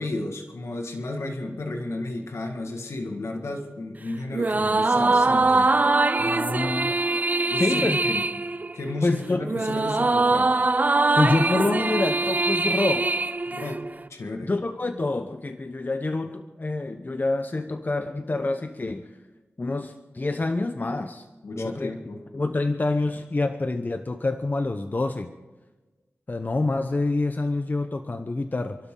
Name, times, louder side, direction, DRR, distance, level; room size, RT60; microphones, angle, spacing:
voice 1, 0.0-5.7 7.5-8.2 8.7-10.5 13.5-13.8 14.1-14.5 21.4-22.2, left 2 dB, 80° left, 3 dB, 1.8 m, -33 dB
sound 1, 4.3-14.0, right 3 dB, 35° right, 0.5 m, -23 dB
voice 2, 6.2-7.0 7.6-8.0 9.0-9.4 11.2-13.5 14.5-19.1 19.6-21.2 21.6-21.9 22.3-25.3 26.3-28.8, left 2 dB, 40° left, 8 dB, 0.8 m, -27 dB
27.5 x 12.5 x 3.9 m, 1.2 s
cardioid pair, 50°, 5 cm